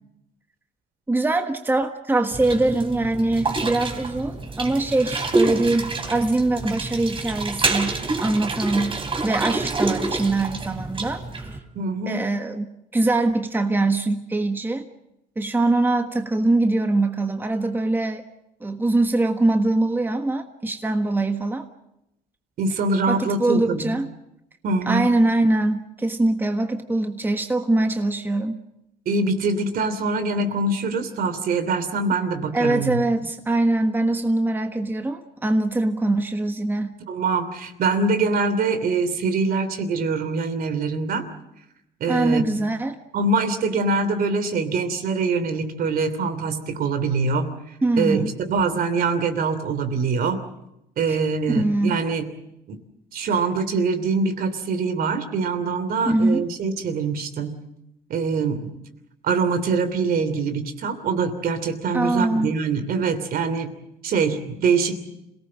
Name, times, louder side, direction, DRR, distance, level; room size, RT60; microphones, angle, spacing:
voice 1, 1.1-8.9 9.2-11.5 12.1-12.7 12.9-14.9 15.4-18.2 18.6-21.7 23.1-24.1 24.9-28.6 32.5-36.9 42.1-43.0 47.8-48.3 51.1-51.2 51.5-52.0 56.0-56.5 61.9-62.5, right 2 dB, 10° right, 5 dB, 1.5 m, -22 dB
sound 1, 2.3-11.6, right 3 dB, 30° right, 3.4 m, -27 dB
voice 2, 11.7-12.3 22.6-23.9 24.6-25.1 29.0-33.0 37.1-41.3 42.0-42.4 43.1-47.5 48.0-50.4 51.0-52.3 52.7-52.8 53.1-57.5 58.1-58.7 59.2-63.7 64.0-65.0, right 4 dB, 60° right, 10 dB, 3.0 m, -24 dB
27.0 x 18.0 x 7.6 m, 0.86 s
cardioid pair, 110°, 17 cm